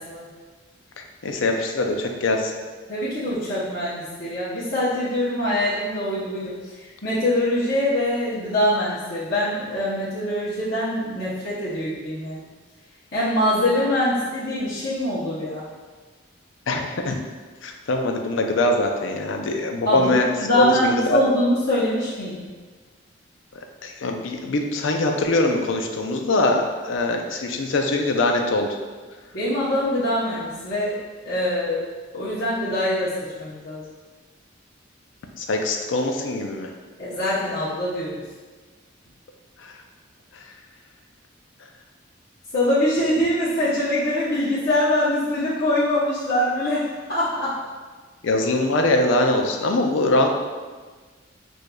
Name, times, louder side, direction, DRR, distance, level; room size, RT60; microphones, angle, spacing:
voice 1, 1.0-2.5 16.7-17.2 17.6-21.2 23.8-28.7 35.4-36.7 39.6-39.7 48.2-50.3, left 2 dB, 75° left, 3 dB, 0.5 m, -22 dB
voice 2, 2.9-12.4 13.1-15.7 19.8-20.1 20.4-22.4 29.3-31.0 31.2-31.9 32.1-33.8 37.0-38.2 42.5-47.6, left 1 dB, 55° left, -11 dB, 0.8 m, -24 dB
6.3 x 2.6 x 2.3 m, 1.4 s
head